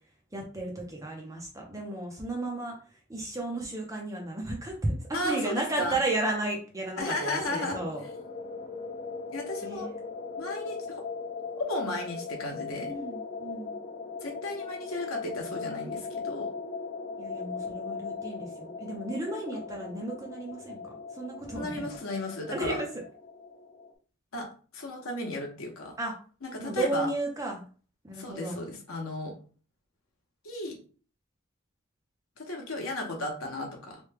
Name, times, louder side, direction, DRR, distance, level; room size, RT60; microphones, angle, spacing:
voice 1, 0.3-2.8 3.1-8.0 9.6-9.9 12.8-13.8 17.2-21.8 22.5-22.9 26.0-26.1 26.6-27.7 28.0-28.6, right 2 dB, 15° right, 0 dB, 0.5 m, -33 dB
voice 2, 5.1-6.0 7.0-7.8 9.3-9.9 10.4-11.0 11.6-12.9 14.2-16.5 19.3-19.4 21.5-22.8 24.3-24.5 24.7-26.0 26.4-27.1 28.1-29.3 30.4-30.8 32.4-34.0, left 1 dB, 80° left, 2 dB, 0.9 m, -34 dB
sound 1, 7.0-23.9, left 4 dB, 35° left, 0.4 m, -39 dB
3.2 x 2.2 x 3.3 m, 0.40 s
head